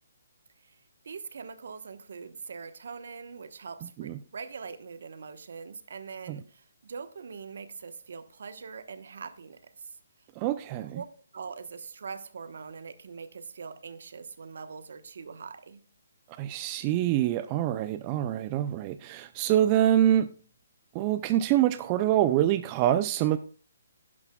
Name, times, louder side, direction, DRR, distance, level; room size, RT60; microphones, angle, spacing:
voice 1, 1.0-10.0 10.8-11.1 11.3-15.8, right 5 dB, 65° right, 1.0 m, -42 dB
voice 2, 10.4-11.0 16.4-20.3 20.9-23.4, right 12 dB, 25° right, 0.4 m, -25 dB
11.5 x 10.5 x 2.3 m
hypercardioid pair, 150°, 0 cm